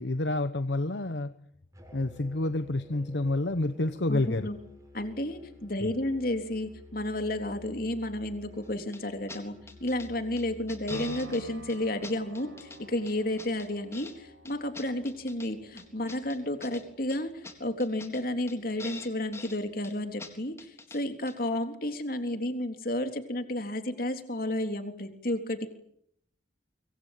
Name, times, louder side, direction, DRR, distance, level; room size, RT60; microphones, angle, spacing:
voice 1, 0.0-1.3 1.9-4.5 5.8-5.9, left 2 dB, 70° left, 11 dB, 1.1 m, -29 dB
Musical instrument, 1.7-11.6, left 1 dB, 15° right, 8.0 m, -52 dB
voice 2, 4.1-4.6 4.9-25.7, left 1 dB, 50° left, 6 dB, 3.6 m, -32 dB
sound 1, 8.9-9.0 9.3-9.4 9.7-10.1 10.4-11.4 11.7-11.8 12.0-12.8 13.1-14.1 14.4-15.5 15.8-16.8 17.1-17.2 17.4-17.5 17.8-18.2 18.5-18.6 18.8-19.6 19.8-19.9 20.2-20.3 20.6-21.0 21.3-21.4, left 3 dB, 15° left, 3.8 m, -44 dB
sound 2, 10.9-19.0 19.5-19.6, right 2 dB, 75° right, 6.1 m, -50 dB
24.5 x 24.5 x 9.1 m, 0.71 s
head